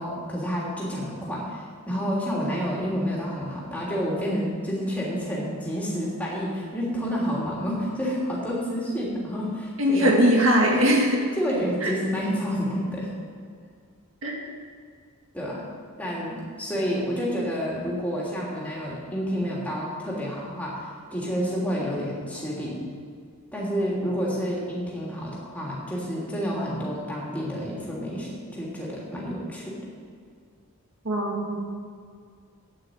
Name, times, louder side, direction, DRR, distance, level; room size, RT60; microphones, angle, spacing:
voice 1, 0.0-10.1 10.7-10.8 11.4-13.1 15.3-15.6 16.0-22.8 23.5-29.8, equal, 5° left, -5 dB, 2.9 m, -29 dB
voice 2, 9.8-11.2 11.8-11.9 14.2-14.4 31.1-31.8, equal, 60° right, -1 dB, 2.1 m, -21 dB
9.4 x 8.9 x 8.7 m, 2.1 s
head